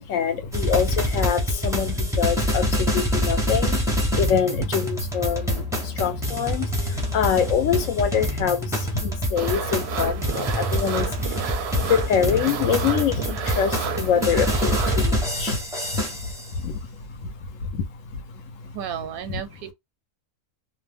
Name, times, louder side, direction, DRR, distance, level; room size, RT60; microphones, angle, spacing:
voice 1, 0.0-11.4 11.7-15.6 15.9-16.2 16.5-17.8 18.1-18.2 18.6-18.7, left 7 dB, 75° left, 0.9 m, -25 dB
sound 1, 0.5-16.4, equal, 5° right, 0.4 m, -26 dB
sound 2, 9.4-15.1, right 8 dB, 65° right, 0.7 m, -31 dB
voice 2, 18.7-19.7, right 9 dB, 90° right, 1.1 m, -33 dB
2.6 x 2.1 x 3.3 m
omnidirectional pair, 1.4 m